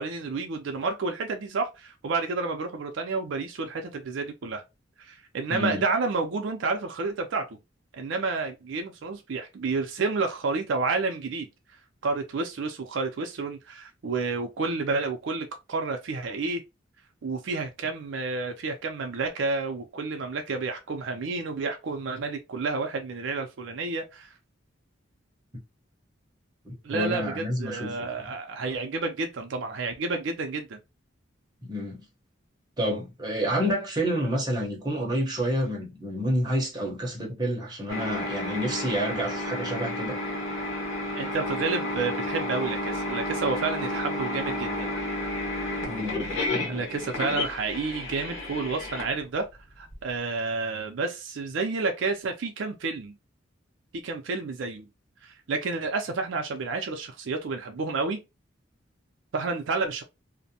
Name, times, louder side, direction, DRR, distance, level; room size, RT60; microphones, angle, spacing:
voice 1, 0.0-4.6 5.0-7.5 7.9-11.5 12.0-16.6 17.2-24.3 26.8-30.8 41.2-44.9 46.7-49.5 49.8-53.1 53.9-54.9 55.2-58.2 59.3-60.0, right 4 dB, 70° right, 0.4 m, -30 dB
voice 2, 5.5-5.8 26.6-28.3 31.6-32.1 32.8-40.2 45.8-46.8, equal, 20° right, 0.7 m, -29 dB
sound 1, 37.9-49.9, left 1 dB, 80° left, 1.0 m, -31 dB
2.5 x 2.1 x 2.7 m
head